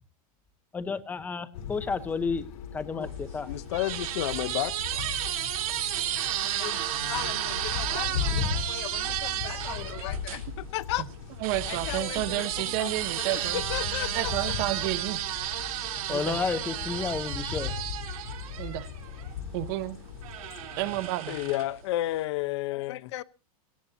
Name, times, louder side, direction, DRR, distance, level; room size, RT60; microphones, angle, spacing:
voice 1, 0.7-2.5 2.7-3.5 16.1-17.7, left 5 dB, 10° left, 0.7 m, -31 dB
sound 1, 1.5-21.1, left 7 dB, 75° left, 3.7 m, -38 dB
sound 2, 3.1-10.4 11.4-19.3 20.2-21.8, right 12 dB, 75° right, 3.6 m, -33 dB
voice 2, 3.4-4.7 6.6-6.8 7.1-11.0 11.7-12.9 13.2-14.6 21.3-23.2, left 16 dB, 50° left, 0.7 m, -33 dB
voice 3, 11.4-13.6 14.1-15.2 16.1-16.4 18.6-18.9 19.5-20.0 20.8-21.4, right 16 dB, 40° right, 0.8 m, -31 dB
18.0 x 17.5 x 2.8 m
supercardioid pair, 165°, 19 cm